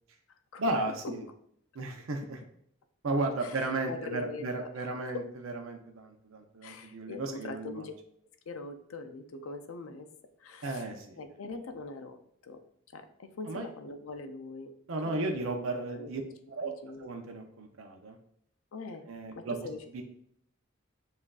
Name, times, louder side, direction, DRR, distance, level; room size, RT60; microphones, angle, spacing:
voice 1, 0.6-1.2 1.7-2.4 3.0-7.9 10.6-11.2 13.5-13.7 14.9-16.2 16.6-16.7 17.0-18.2 19.1-19.6 19.9-20.0, right 2 dB, 85° right, 4 dB, 0.6 m, -34 dB
voice 2, 3.4-4.9 5.1-5.3 6.6-7.9 8.5-10.1 10.4-10.8 11.2-12.6 12.9-14.7 15.1-15.4 15.9-16.1 16.6-17.1 18.7-19.1 19.3-20.0, left 3 dB, 90° left, 8 dB, 0.5 m, -42 dB
7.2 x 2.5 x 2.3 m, 0.68 s
head